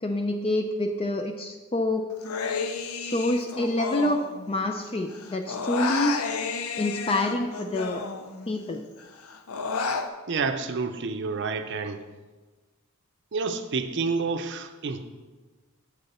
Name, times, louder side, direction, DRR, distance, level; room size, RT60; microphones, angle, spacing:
voice 1, 0.0-2.0 3.0-6.1 6.8-8.0 8.5-8.8, left 1 dB, 25° left, 5 dB, 0.4 m, -27 dB
Human voice, 2.2-4.9 5.1-8.6 9.0-10.1, left 5 dB, 85° left, 0.6 m, -32 dB
voice 2, 10.3-12.0 13.3-15.0, right 4 dB, 55° right, 9 dB, 0.6 m, -29 dB
7.9 x 6.8 x 4.2 m, 1.3 s
head